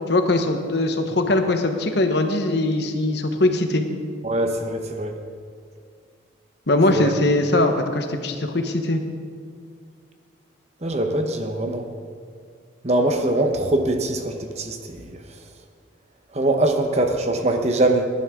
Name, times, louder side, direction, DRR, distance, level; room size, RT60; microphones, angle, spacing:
voice 1, 0.1-3.8 6.7-9.0, left 2 dB, 55° left, 6 dB, 1.1 m, -21 dB
voice 2, 4.2-5.1 6.9-7.1 10.8-11.8 12.8-15.0 16.3-18.1, right 1 dB, 35° right, 5 dB, 0.9 m, -22 dB
18.5 x 11.0 x 3.7 m, 2.1 s
head